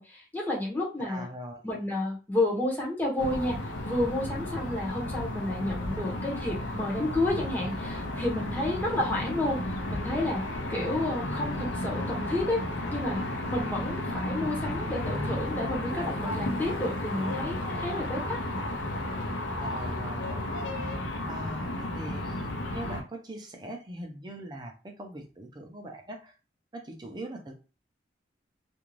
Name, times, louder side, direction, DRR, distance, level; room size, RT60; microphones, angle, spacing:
voice 1, 0.0-1.3 1.6-3.6 3.8-10.4 10.7-12.6 12.9-13.2 13.5-18.4, left 1 dB, 10° left, -3 dB, 0.8 m, -31 dB
voice 2, 1.1-1.6 8.5-8.8 10.6-11.0 19.6-20.5 20.8-20.9 21.3-26.3 26.7-27.5, right 1 dB, 25° right, 3 dB, 0.5 m, -41 dB
sound 1, 3.2-23.0, left 1 dB, 90° left, 0.6 m, -33 dB
2.5 x 2.3 x 3.1 m, 0.32 s
head